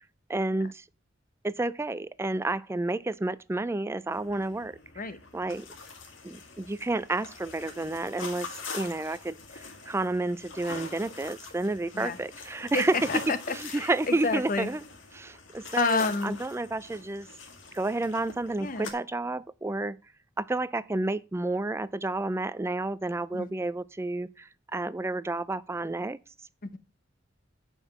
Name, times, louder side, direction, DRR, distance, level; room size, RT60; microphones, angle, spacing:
voice 1, 0.3-0.8 1.4-5.7 6.2-8.5 8.7-9.4 9.9-13.0 13.5-14.8 15.1-17.3 17.7-20.0 20.4-26.2, right 2 dB, 15° right, 0.4 m, -30 dB
sound 1, 4.1-18.9, left 4 dB, 90° left, 2.0 m, -44 dB
voice 2, 12.7-14.7 15.8-16.4 18.6-18.9 23.3-23.5, left 4 dB, 45° left, 0.9 m, -29 dB
9.3 x 5.4 x 5.8 m
head